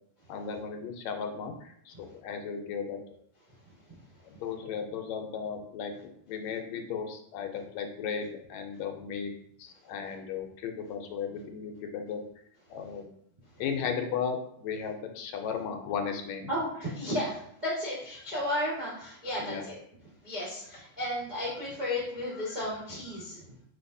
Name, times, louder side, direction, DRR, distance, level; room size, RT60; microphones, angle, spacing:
voice 1, 0.3-3.0 4.2-9.3 9.6-12.2 12.7-13.1 13.6-16.5 19.4-19.7 22.3-22.5 23.1-23.2, left 6 dB, 80° left, 4 dB, 1.8 m, -35 dB
voice 2, 16.5-19.8 20.2-23.4, left 1 dB, 50° right, -8 dB, 0.5 m, -33 dB
5.3 x 3.2 x 2.6 m, 0.68 s
omnidirectional pair, 3.3 m